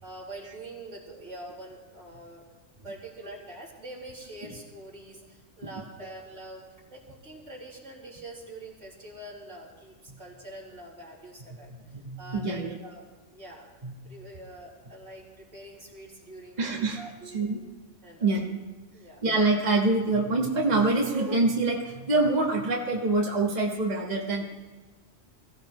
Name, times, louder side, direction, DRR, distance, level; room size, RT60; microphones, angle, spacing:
voice 1, 0.0-2.4 2.8-6.6 6.9-11.7 12.2-13.0 13.3-13.7 14.0-16.7 17.0-17.4 18.0-18.3 18.9-19.2, right 1 dB, 80° right, -6 dB, 4.2 m, -44 dB
voice 2, 11.7-12.7 13.8-13.9 16.6-17.0 17.3-17.6 18.2-18.6 19.2-24.5, right 2 dB, 35° right, -1 dB, 1.6 m, -25 dB
22.0 x 15.5 x 3.1 m, 1.3 s
omnidirectional pair, 1.2 m